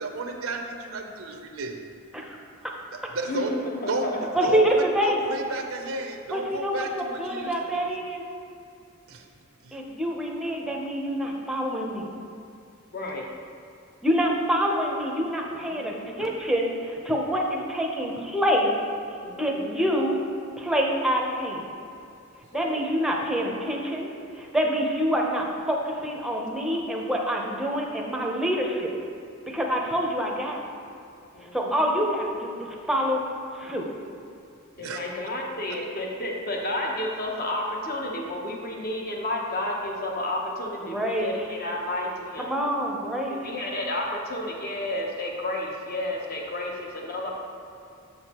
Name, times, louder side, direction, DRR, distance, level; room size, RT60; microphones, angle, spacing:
voice 1, 0.0-1.8 3.1-3.5 3.9-4.1 4.4-7.9 9.1-9.2 9.6-9.8 34.8-35.0, right 2 dB, 70° right, 3 dB, 0.6 m, -32 dB
voice 2, 3.3-4.5 12.9-13.3 15.7-16.2 19.2-19.9 22.5-22.8 31.3-31.9 34.8-42.5 43.3-47.3, left 1 dB, 45° left, -1 dB, 0.9 m, -31 dB
voice 3, 4.3-5.2 6.3-6.9 7.2-8.2 9.7-12.1 14.0-18.7 19.4-20.2 20.6-21.6 22.5-28.9 29.5-30.6 31.5-33.2 33.5-33.8 40.8-41.3 42.4-43.5, equal, ahead, -1 dB, 0.7 m, -26 dB
7.0 x 6.5 x 2.9 m, 2.6 s
head